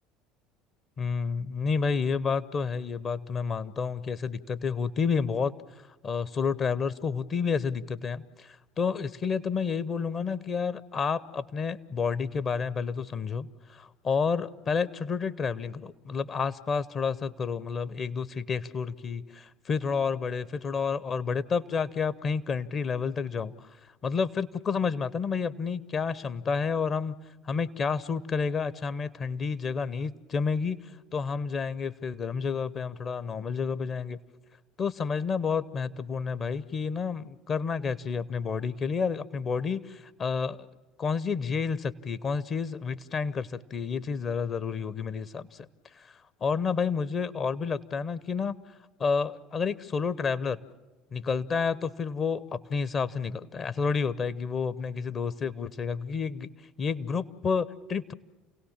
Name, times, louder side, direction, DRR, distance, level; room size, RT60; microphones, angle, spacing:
voice 1, 1.0-5.5 6.0-23.7 24.0-27.1 27.4-34.2 34.8-40.6 41.0-45.5 46.0-46.1 46.4-48.6 49.0-50.6 51.1-56.5 56.8-58.1, left 5 dB, 35° left, 16 dB, 0.8 m, -30 dB
29.0 x 17.5 x 7.3 m, 1.2 s
figure-of-eight pair, 65°, 0 cm